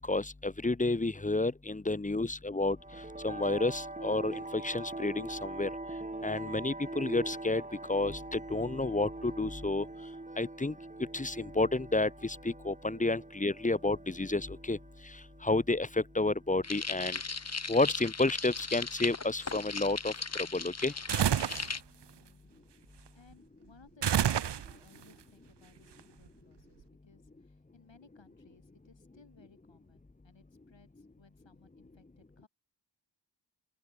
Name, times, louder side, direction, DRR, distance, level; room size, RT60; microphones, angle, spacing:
voice 1, 0.1-2.8 3.2-5.7 6.2-7.6 7.9-9.8 10.4-10.7 11.1-14.8 15.4-15.9 16.1-17.2 17.7-20.1 20.5-20.9, left 2 dB, 20° left, 0.8 m, -30 dB
sound 1, 2.8-16.9, right 2 dB, 15° right, 1.2 m, -44 dB
sound 2, 16.6-21.8, left 4 dB, 35° left, 1.1 m, -37 dB
sound 3, 21.1-21.7 24.0-25.0, right 9 dB, 70° right, 0.7 m, -28 dB
voice 2, 22.2-32.5, left 4 dB, 90° left, 7.5 m, -62 dB
open air
wide cardioid pair, 50°, 43 cm